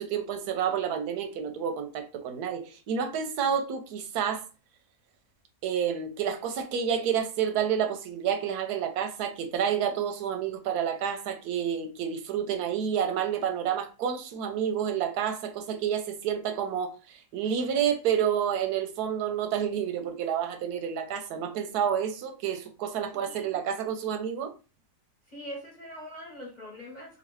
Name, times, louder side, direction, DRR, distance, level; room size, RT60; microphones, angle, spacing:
voice 1, 0.0-4.4 5.6-24.5, right 8 dB, 90° right, 1.1 m, -29 dB
voice 2, 23.1-23.6 25.3-27.2, equal, 35° left, 0.9 m, -43 dB
3.0 x 2.4 x 3.0 m
omnidirectional pair, 1.6 m